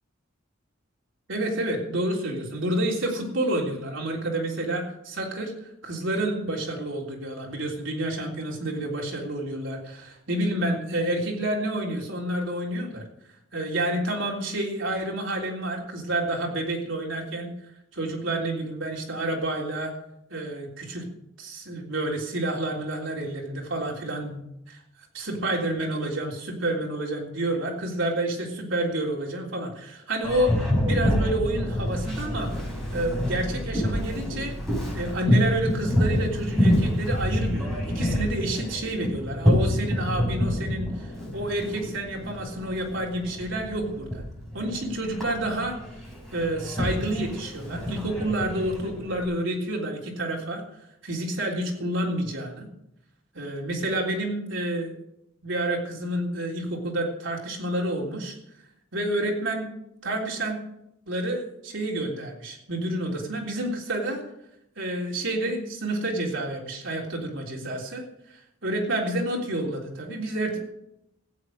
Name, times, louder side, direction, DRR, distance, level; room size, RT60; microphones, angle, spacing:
voice 1, 1.3-5.5 5.8-13.0 13.5-17.5 17.9-19.9 20.3-21.1 21.4-24.4 24.7-24.8 25.1-34.6 34.9-41.1 41.3-44.2 44.5-45.8 46.3-50.6 51.0-52.7 53.3-54.9 55.4-58.3 58.9-59.7 60.0-60.6 61.1-64.2 64.8-68.1 68.6-70.6, right 1 dB, 65° right, -1 dB, 3.5 m, -29 dB
Boat Water vehicle, 30.2-49.2, left 1 dB, ahead, 5.5 m, -27 dB
15.0 x 8.4 x 6.6 m, 0.79 s
head